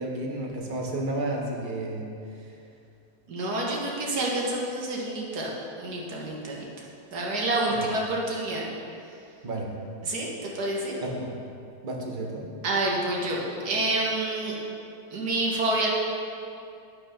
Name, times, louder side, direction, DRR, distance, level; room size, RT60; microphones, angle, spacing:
voice 1, 0.0-2.0 7.7-7.9 9.4-9.7 11.0-11.3 11.8-12.5, right 2 dB, 35° right, -1 dB, 1.4 m, -31 dB
voice 2, 3.3-5.5 5.8-6.7 7.1-8.6 10.0-11.0 12.6-14.6 15.1-15.9, right 2 dB, 80° right, -3 dB, 2.1 m, -28 dB
11.5 x 6.0 x 5.7 m, 2.6 s
omnidirectional pair, 1.7 m